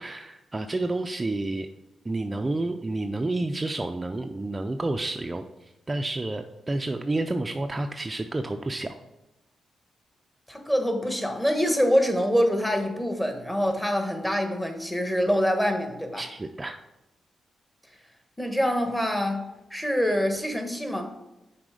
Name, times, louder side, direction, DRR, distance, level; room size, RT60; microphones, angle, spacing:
voice 1, 0.0-1.7 2.1-5.5 5.9-9.0 16.2-16.8, right 2 dB, 25° right, 6 dB, 0.4 m, -30 dB
voice 2, 10.5-16.2 18.4-21.1, equal, 10° left, 5 dB, 1.2 m, -25 dB
6.1 x 4.1 x 5.0 m, 0.95 s
cardioid pair, 70°, 0 cm